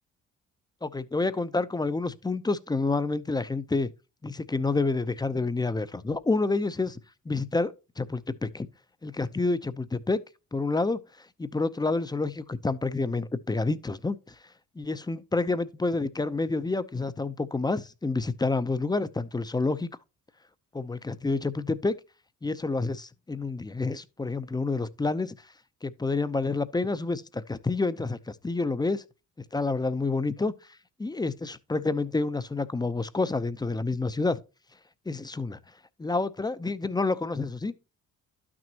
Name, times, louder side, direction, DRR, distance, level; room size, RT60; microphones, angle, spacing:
voice 1, 0.8-3.9 4.2-7.0 7.3-8.7 9.0-10.2 10.5-14.3 14.8-19.9 20.7-22.0 22.4-25.3 25.8-29.0 29.5-30.5 31.0-34.4 35.1-35.6 36.0-37.7, left 3 dB, 15° left, 0.6 m, -28 dB
12.0 x 6.2 x 2.8 m
cardioid pair, 90°, 30 cm